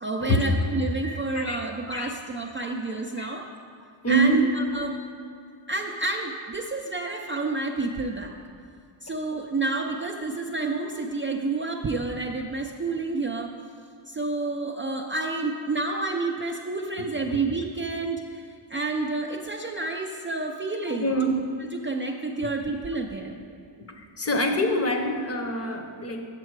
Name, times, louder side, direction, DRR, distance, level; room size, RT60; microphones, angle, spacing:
voice 1, 0.0-3.5 4.1-5.0 5.7-8.3 9.0-13.5 14.1-18.4 18.7-21.1 21.6-23.4, right 3 dB, 25° right, 1 dB, 0.4 m, -29 dB
voice 2, 1.0-1.6 1.9-2.1 3.2-3.3 4.0-4.4 20.9-21.5 23.9-26.3, right 1 dB, 30° left, 4 dB, 0.7 m, -25 dB
7.5 x 7.2 x 4.6 m, 2.3 s
wide cardioid pair, 130°, 48 cm